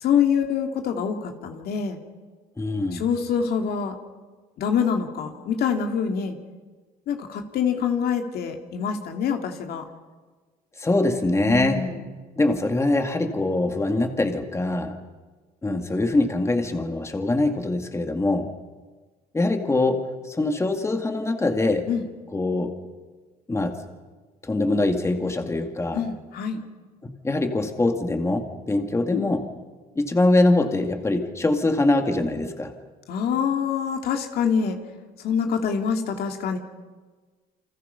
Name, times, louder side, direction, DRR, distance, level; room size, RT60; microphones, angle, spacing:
voice 1, 0.0-2.0 2.9-4.0 4.6-6.4 7.1-9.8 11.5-12.0 21.9-22.1 25.9-26.6 29.1-29.3 33.1-34.8 35.2-36.6, left 7 dB, 65° left, 4 dB, 2.5 m, -25 dB
voice 2, 2.6-3.0 10.8-12.0 12.4-15.0 15.6-18.5 19.3-21.9 22.3-22.7 23.5-23.8 24.4-26.0 27.0-29.5 30.0-32.7, left 2 dB, 15° left, 5 dB, 2.1 m, -23 dB
29.0 x 25.5 x 5.7 m, 1.4 s
cardioid pair, 110°, 17 cm